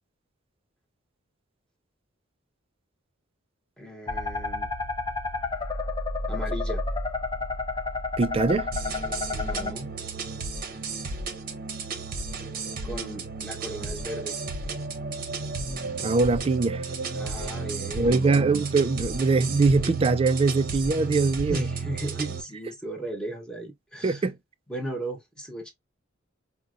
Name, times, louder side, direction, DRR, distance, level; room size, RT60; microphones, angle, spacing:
voice 1, 3.8-4.7 6.3-6.8 9.3-9.9 12.8-14.4 17.1-18.3 21.5-24.3 24.7-25.7, right 1 dB, 5° left, 0.9 m, -36 dB
sound 1, 4.1-9.7, left 3 dB, 25° left, 0.5 m, -30 dB
voice 2, 8.2-8.7 16.0-16.8 17.9-21.7 24.0-24.4, right 3 dB, 30° right, 0.3 m, -22 dB
sound 2, 8.7-22.4, right 4 dB, 50° right, 0.8 m, -33 dB
5.3 x 2.1 x 2.5 m
head